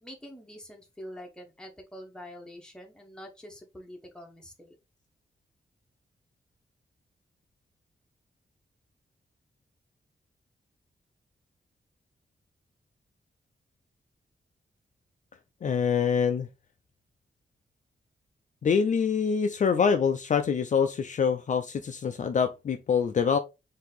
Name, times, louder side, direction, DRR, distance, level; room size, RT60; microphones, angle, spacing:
voice 1, 0.0-4.8, equal, 5° left, 1.0 m, -45 dB
voice 2, 15.6-16.5 18.6-23.4, left 6 dB, 45° left, 0.4 m, -25 dB
4.6 x 2.7 x 3.9 m
wide cardioid pair, 155°, 17 cm